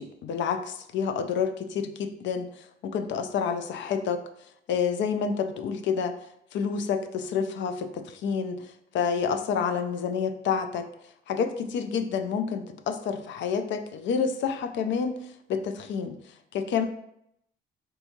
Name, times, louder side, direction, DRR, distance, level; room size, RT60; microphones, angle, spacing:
voice 1, 0.0-4.2 4.7-6.2 6.5-10.9 11.3-16.2 16.5-16.8, left 6 dB, 70° left, 8 dB, 0.4 m, -29 dB
3.4 x 2.7 x 2.7 m, 0.77 s
cardioid pair, 90°, 20 cm